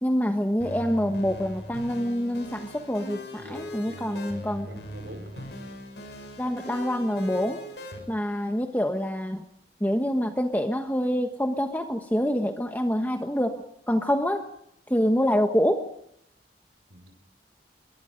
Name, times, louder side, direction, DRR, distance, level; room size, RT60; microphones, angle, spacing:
voice 1, 0.0-4.7 6.4-7.6 8.1-9.5 9.8-14.4 14.9-15.8, equal, 10° left, 5 dB, 1.3 m, -26 dB
sound 1, 0.6-8.0, left 1 dB, 80° left, 7.5 m, -40 dB
voice 2, 3.4-4.4 4.7-5.6 16.9-17.1, right 1 dB, 80° right, 5 dB, 5.1 m, -45 dB
27.0 x 23.0 x 5.3 m, 0.74 s
head